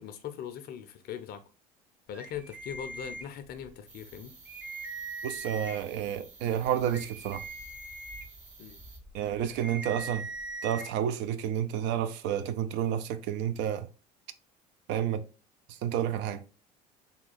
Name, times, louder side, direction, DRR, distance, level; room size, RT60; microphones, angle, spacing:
voice 1, 0.0-1.4 2.1-4.3 8.6-8.8, left 8 dB, 50° left, 0.5 m, -40 dB
sound 1, 2.1-3.7 4.1-4.2 4.5-6.0 6.5-10.9, right 3 dB, 5° right, 0.6 m, -41 dB
sound 2, 3.9-9.0, right 4 dB, 35° right, 1.3 m, -53 dB
voice 2, 5.2-7.4 9.1-10.3 10.6-13.9 14.9-15.3 15.7-16.4, right 10 dB, 55° right, 0.5 m, -30 dB
3.7 x 2.3 x 3.9 m
hypercardioid pair, 70°, 21 cm